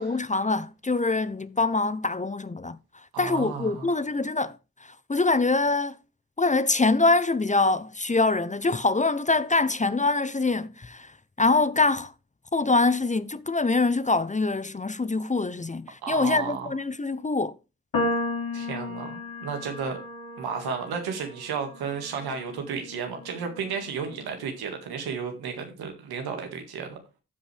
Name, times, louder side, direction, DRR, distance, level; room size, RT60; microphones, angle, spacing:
voice 1, 0.0-2.8 3.2-6.0 6.4-12.1 12.5-17.6, left 3 dB, 20° left, 0.7 m, -24 dB
voice 2, 3.1-3.9 16.0-16.7 18.5-20.0 20.4-27.0, right 6 dB, 90° right, 2.0 m, -33 dB
sound 1, 17.9-24.3, left 2 dB, 70° left, 3.2 m, -34 dB
14.5 x 5.2 x 3.4 m
supercardioid pair, 40°, 37 cm